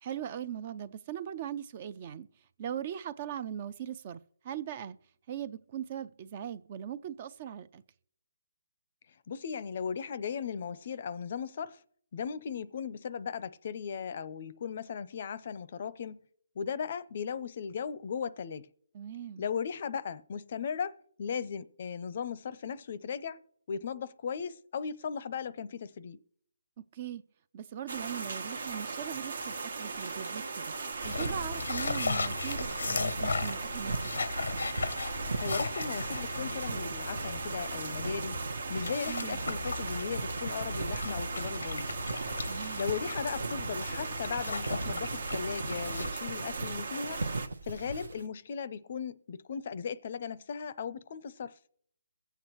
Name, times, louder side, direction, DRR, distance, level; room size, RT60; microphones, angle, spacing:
voice 1, 0.0-2.3 2.6-5.0 5.3-7.8 18.9-19.5 26.9-27.2 27.5-30.7 31.0-34.1 39.1-39.5 42.5-42.9, right 9 dB, 30° right, 0.4 m, -40 dB
voice 2, 9.3-11.8 12.1-16.3 16.6-18.7 19.4-23.4 23.7-26.2 35.4-38.4 38.7-41.9 42.8-47.3 47.6-51.5, left 6 dB, 45° left, 0.5 m, -37 dB
sound 1, 27.9-47.5, right 4 dB, 70° right, 1.2 m, -38 dB
Walk footsteps, 30.9-48.3, right 3 dB, 90° right, 0.9 m, -40 dB
sound 2, 31.0-46.1, left 3 dB, 85° left, 0.7 m, -37 dB
22.5 x 7.9 x 3.0 m
hypercardioid pair, 165°, 0 cm